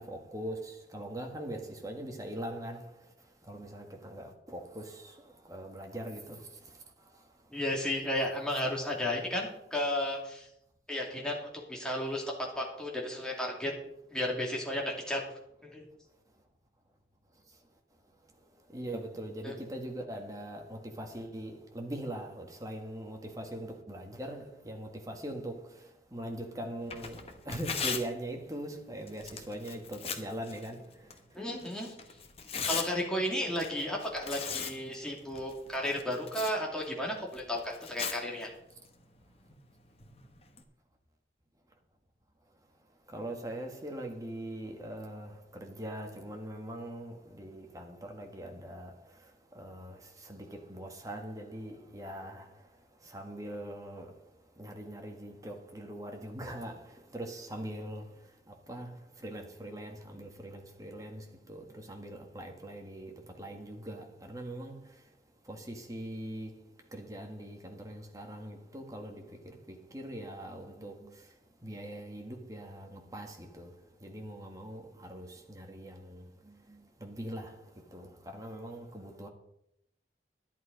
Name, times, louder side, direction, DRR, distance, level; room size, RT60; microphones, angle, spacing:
voice 1, 0.0-2.8 3.5-5.1 5.5-6.4 18.7-25.7 26.1-30.8 43.1-48.9 49.6-50.0 50.2-52.5 53.1-54.1 54.6-58.1 58.7-58.9 59.2-64.8 65.5-66.6 66.9-69.4 69.7-71.1 71.6-73.7 74.0-77.6 77.9-79.3, right 1 dB, 20° right, 1.7 m, -41 dB
voice 2, 7.5-10.5 10.9-12.2 12.6-13.7 14.1-15.2 15.6-15.8 19.4-19.5 31.3-31.9 32.6-38.5, left 1 dB, 5° left, 2.5 m, -33 dB
Tearing, 26.8-40.6, left 6 dB, 35° left, 1.2 m, -42 dB
11.0 x 11.0 x 5.2 m
head